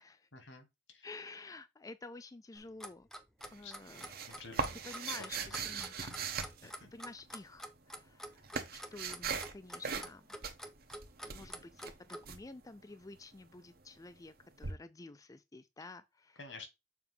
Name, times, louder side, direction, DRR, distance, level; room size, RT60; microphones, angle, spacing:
voice 1, 0.4-1.0 3.6-3.7 4.3-4.8 5.3-5.5 6.8-6.9 16.4-16.7, left 3 dB, 80° left, 1.7 m, -49 dB
voice 2, 1.0-3.1 3.5-4.3 4.7-6.1 6.6-10.3 11.2-16.5, left 3 dB, 20° left, 0.4 m, -51 dB
Clock, 2.6-12.3, equal, ahead, 0.8 m, -47 dB
sound 1, 3.4-7.3 8.0-9.6 9.8-10.2 10.4-12.4 14.6-14.7, right 5 dB, 55° right, 1.1 m, -39 dB
7.0 x 2.8 x 5.4 m
head